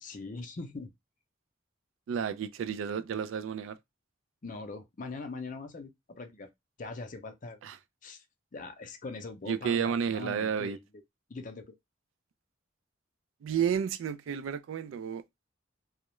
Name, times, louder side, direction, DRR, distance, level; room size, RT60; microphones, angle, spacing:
voice 1, 0.0-0.9 4.4-6.5 6.8-7.6 8.0-8.2 8.5-10.8 11.3-11.7, left 3 dB, 40° left, 0.5 m, -41 dB
voice 2, 2.1-3.8 7.6-7.8 9.5-10.8 13.4-15.2, right 7 dB, 75° right, 0.3 m, -31 dB
2.3 x 2.1 x 2.9 m
head